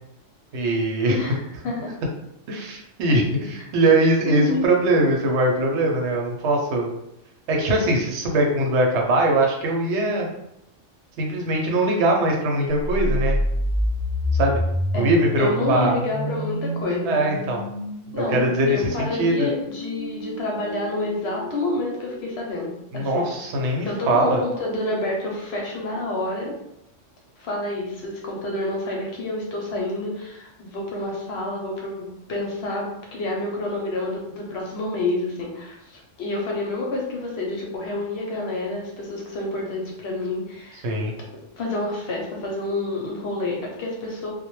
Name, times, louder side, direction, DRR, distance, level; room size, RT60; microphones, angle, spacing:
voice 1, 0.5-1.2 2.5-6.9 7.5-10.3 11.2-13.4 14.3-14.6 14.9-16.0 17.0-17.6 18.2-19.5 22.9-24.4 40.8-41.1, right 1 dB, 70° right, 1 dB, 0.8 m, -21 dB
voice 2, 1.1-1.9 3.8-3.9 4.2-4.7 14.9-17.2 18.1-23.3 23.8-26.5 27.4-40.9 41.6-44.3, left 2 dB, 65° left, -2 dB, 0.8 m, -28 dB
sound 1, 12.9-22.7, left 1 dB, 35° left, 0.6 m, -28 dB
2.1 x 2.1 x 3.0 m, 0.81 s
omnidirectional pair, 1.3 m